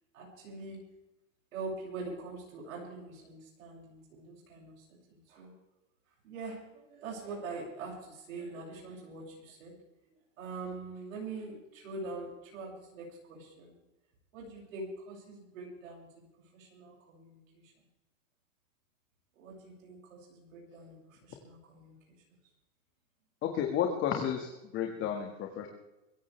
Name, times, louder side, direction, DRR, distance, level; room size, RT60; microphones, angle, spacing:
voice 1, 0.1-0.8 1.5-5.5 6.1-9.7 10.1-13.8 14.3-17.9 19.3-22.2, right 3 dB, 90° right, -2 dB, 7.1 m, -44 dB
voice 2, 23.4-25.7, left 8 dB, 30° left, 2 dB, 2.0 m, -32 dB
24.0 x 16.0 x 3.4 m, 0.96 s
supercardioid pair, 150°, 39 cm